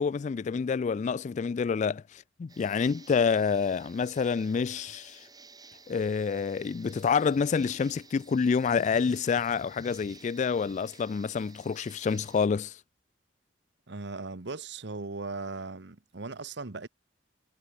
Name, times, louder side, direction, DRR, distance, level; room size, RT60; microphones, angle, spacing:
voice 1, 0.0-5.2 5.9-12.7, left 5 dB, 40° left, 0.3 m, -28 dB
sound 1, 2.5-12.5, right 4 dB, 20° right, 6.7 m, -54 dB
voice 2, 13.9-16.9, right 3 dB, 70° right, 1.2 m, -38 dB
head